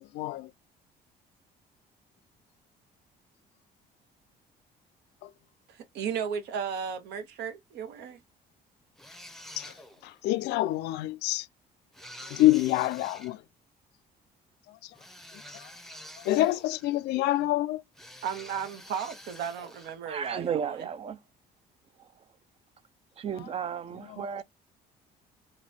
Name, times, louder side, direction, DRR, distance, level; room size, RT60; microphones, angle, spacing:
voice 1, 0.1-0.5 5.2-5.3 9.6-9.7 10.0-11.5 12.3-13.4 16.2-17.8 24.1-24.4, left 16 dB, 80° left, 0.4 m, -26 dB
voice 2, 5.7-8.2 18.2-20.9, right 7 dB, 80° right, 1.0 m, -35 dB
sound 1, 9.0-10.1 11.9-13.3 14.9-17.0 18.0-20.0, equal, ahead, 0.6 m, -48 dB
voice 3, 20.1-21.2 23.2-24.4, right 7 dB, 35° right, 0.4 m, -33 dB
3.0 x 2.2 x 4.0 m
cardioid pair, 110°, 17 cm